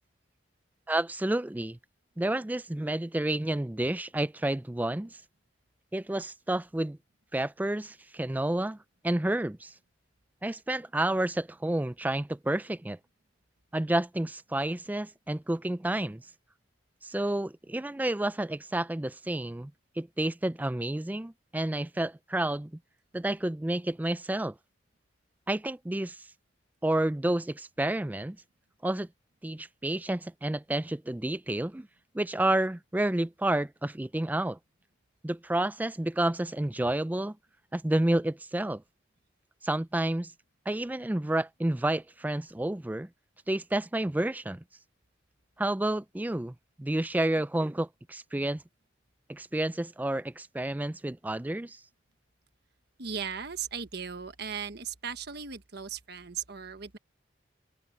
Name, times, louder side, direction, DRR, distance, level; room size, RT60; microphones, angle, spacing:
voice 1, 0.9-1.8 2.2-5.2 5.9-7.0 7.3-8.8 9.0-9.7 10.4-13.0 13.7-16.2 17.0-19.7 20.0-22.7 23.1-24.5 25.5-26.2 26.8-28.4 28.8-29.1 29.4-31.9 32.1-34.6 35.2-37.4 37.7-38.8 39.6-40.3 40.7-43.1 43.5-44.6 45.6-48.6 49.3-51.8, right 1 dB, 10° right, 0.3 m, -30 dB
voice 2, 53.0-57.0, right 7 dB, 55° right, 1.3 m, -37 dB
open air
head